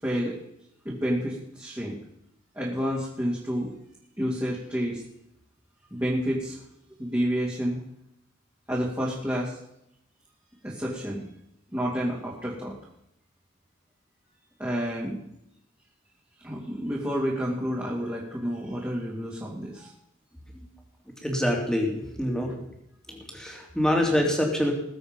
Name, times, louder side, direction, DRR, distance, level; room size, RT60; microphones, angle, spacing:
voice 1, 0.0-0.4 0.8-2.0 2.5-3.7 4.2-5.0 5.9-6.6 7.0-7.8 8.7-9.6 10.6-11.3 11.7-12.8 14.6-15.3 16.4-19.9, equal, 10° right, -6 dB, 2.8 m, -29 dB
voice 2, 21.2-22.7 23.1-24.7, left 1 dB, 5° left, 0 dB, 2.9 m, -26 dB
20.5 x 7.8 x 5.4 m, 0.78 s
head